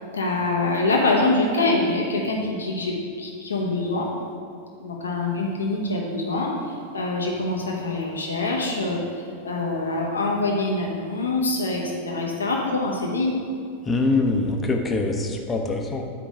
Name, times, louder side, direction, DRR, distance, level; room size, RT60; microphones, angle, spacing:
voice 1, 0.1-4.1 4.8-6.5 6.9-9.0 9.4-13.3, left 2 dB, 70° left, -1 dB, 1.1 m, -24 dB
voice 2, 13.9-16.0, left 3 dB, 20° left, 3 dB, 0.9 m, -23 dB
8.5 x 5.0 x 5.0 m, 2.3 s
figure-of-eight pair, 90°, 0 cm